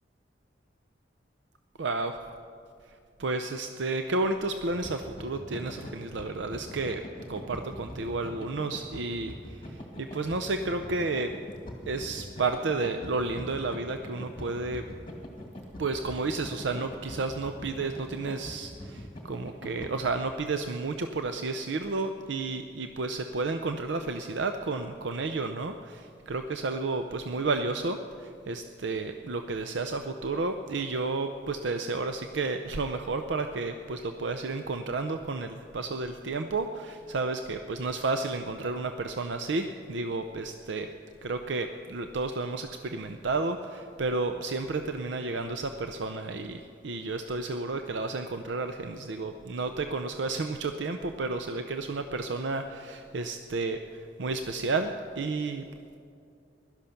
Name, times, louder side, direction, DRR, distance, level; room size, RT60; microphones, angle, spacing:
voice 1, 1.8-2.2 3.2-7.0 7.3-11.3 11.9-14.8 15.8-40.9 41.2-55.7, right 3 dB, 80° right, 7 dB, 0.6 m, -32 dB
sound 1, 4.7-19.9, left 1 dB, 25° left, 2.1 m, -42 dB
16.0 x 12.0 x 5.8 m, 2.5 s
head